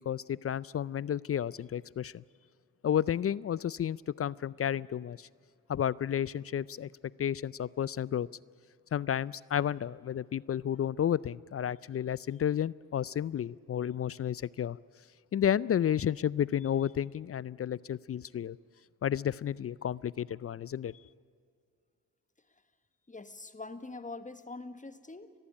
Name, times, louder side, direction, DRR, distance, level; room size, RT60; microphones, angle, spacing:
voice 1, 0.1-2.2 2.8-5.3 5.7-6.9 7.2-8.3 8.9-14.8 15.3-18.6 19.0-20.9, left 9 dB, 40° left, 22 dB, 0.4 m, -31 dB
voice 2, 23.1-25.3, left 3 dB, 20° left, 11 dB, 1.5 m, -44 dB
20.5 x 14.5 x 9.9 m, 2.2 s
supercardioid pair, 50°, 35 cm